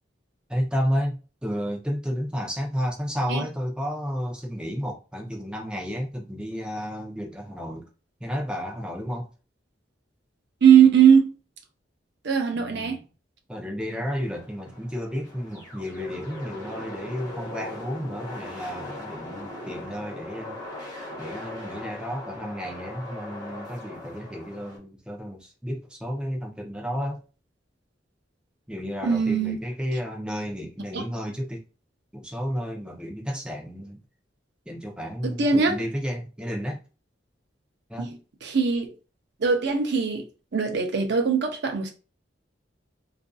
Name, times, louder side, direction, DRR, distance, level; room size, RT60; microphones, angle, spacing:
voice 1, 0.5-7.9 8.2-9.3 12.5-13.0 13.5-20.6 21.2-27.2 28.7-31.6 32.1-34.0 34.7-36.8 37.9-38.1, equal, 5° right, 0.5 m, -32 dB
voice 2, 10.6-11.3 12.2-13.0 29.0-29.6 30.9-31.0 35.2-35.7 38.0-38.9 39.4-40.2 40.5-41.9, right 7 dB, 65° right, 0.6 m, -20 dB
sound 1, 13.8-24.8, left 1 dB, 20° left, 0.9 m, -40 dB
2.5 x 2.5 x 2.3 m
head